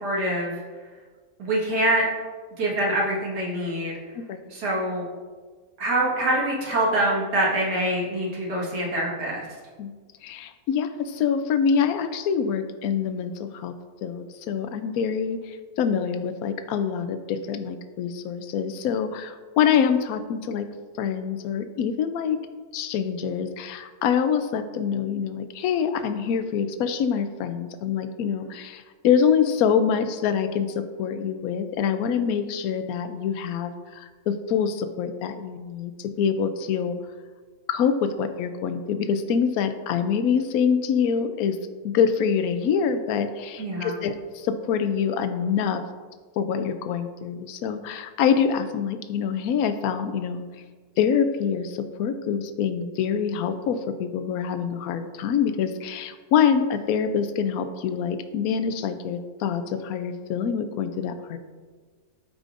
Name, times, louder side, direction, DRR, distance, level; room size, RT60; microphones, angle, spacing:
voice 1, 0.0-0.5 1.4-2.1 2.6-3.9 4.5-5.0 5.8-9.5 43.6-44.0, right 1 dB, 85° right, -4 dB, 2.2 m, -25 dB
voice 2, 9.8-13.7 14.0-20.7 21.0-22.4 22.7-37.0 37.7-41.6 41.8-45.8 46.4-50.4 51.0-61.4, left 7 dB, 70° left, 10 dB, 1.0 m, -25 dB
12.5 x 4.9 x 2.5 m, 1.5 s
omnidirectional pair, 1.7 m